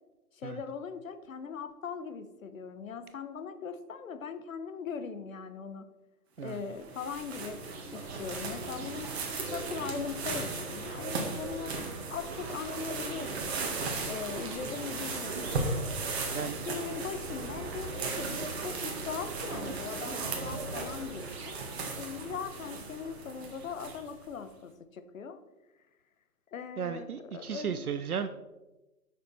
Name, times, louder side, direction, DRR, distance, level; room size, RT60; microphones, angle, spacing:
voice 1, 0.3-5.9 6.4-7.6 7.9-9.1 9.4-11.8 12.1-13.6 14.0-15.8 16.4-21.6 21.9-25.4 26.5-27.1 27.3-27.8, left 6 dB, 55° left, 10 dB, 1.0 m, -40 dB
sound 1, 6.5-24.3, right 3 dB, 40° right, 1.9 m, -36 dB
voice 2, 26.8-28.3, right 7 dB, 65° right, 10 dB, 0.7 m, -35 dB
9.9 x 6.7 x 4.2 m, 1.1 s
figure-of-eight pair, 135°, 47 cm